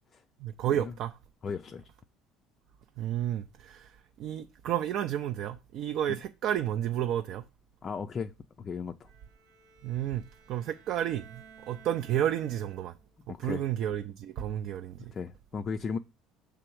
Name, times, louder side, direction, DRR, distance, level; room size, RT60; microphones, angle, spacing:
voice 1, 0.4-1.1 3.0-7.4 9.8-12.9 13.4-15.1, right 11 dB, 55° right, 0.4 m, -31 dB
voice 2, 1.4-1.8 6.1-6.2 7.8-8.3 8.6-9.1 13.3-13.6 15.1-16.0, left 5 dB, 25° left, 0.3 m, -36 dB
Bowed string instrument, 9.0-13.2, right 6 dB, 85° right, 1.6 m, -55 dB
6.9 x 3.4 x 6.1 m
cardioid pair, 155°, 0 cm